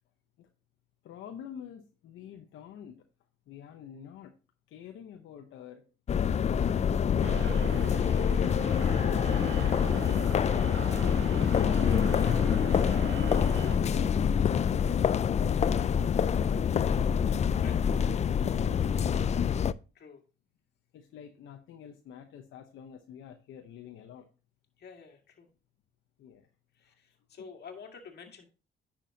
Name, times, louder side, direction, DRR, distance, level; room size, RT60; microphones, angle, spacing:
voice 1, 1.0-3.1 3.5-4.4 4.7-5.9 7.3-8.9 11.8-12.3 13.5-15.2 15.5-17.0 17.4-19.5 20.9-24.3 26.2-26.5 26.9-27.0, left 8 dB, 80° left, 4 dB, 0.9 m, -47 dB
sound 1, 6.1-19.7, left 7 dB, 35° left, 0.4 m, -26 dB
sound 2, 7.2-13.8, right 10 dB, 80° right, 0.9 m, -42 dB
voice 2, 9.1-9.6 17.6-17.8 19.9-20.2 24.8-25.5 26.7-28.5, left 5 dB, 55° left, 3 dB, 2.0 m, -49 dB
10.0 x 6.2 x 2.8 m, 0.33 s
cardioid pair, 90°, 20 cm